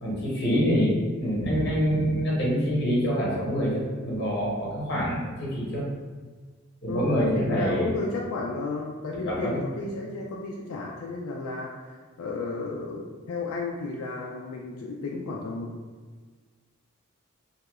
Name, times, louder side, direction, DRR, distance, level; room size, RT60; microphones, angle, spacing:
voice 1, 0.0-5.9 6.8-7.9 9.2-9.6, equal, 50° left, -5 dB, 0.9 m, -26 dB
voice 2, 6.9-15.7, left 3 dB, 85° left, -1 dB, 0.4 m, -33 dB
2.7 x 2.4 x 3.0 m, 1.4 s
head